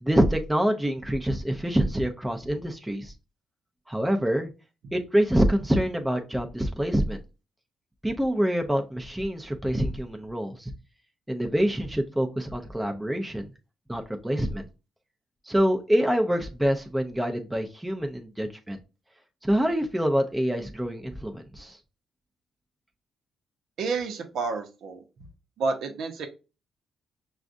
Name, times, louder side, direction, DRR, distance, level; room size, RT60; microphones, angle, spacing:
voice 1, 0.0-3.1 3.9-4.5 4.9-7.2 8.0-10.7 11.3-13.5 13.9-14.6 15.5-18.8 19.4-21.8, equal, 10° right, 0.6 m, -26 dB
voice 2, 23.8-25.0 25.6-26.3, right 4 dB, 70° right, 0.8 m, -30 dB
6.0 x 2.4 x 2.6 m
cardioid pair, 90°, 0 cm